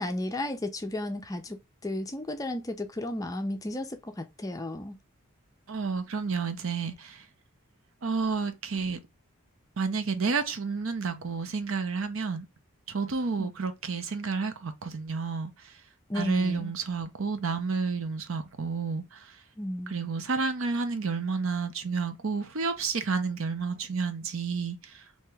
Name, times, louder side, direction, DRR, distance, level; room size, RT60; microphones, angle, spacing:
voice 1, 0.0-5.0 13.4-13.5 16.1-16.7 19.6-19.9, left 1 dB, 15° left, 0.4 m, -34 dB
voice 2, 5.7-7.2 8.0-9.0 9.8-12.5 12.9-15.5 16.2-19.3 19.9-25.0, right 4 dB, 70° right, 0.6 m, -30 dB
2.9 x 2.7 x 3.3 m
head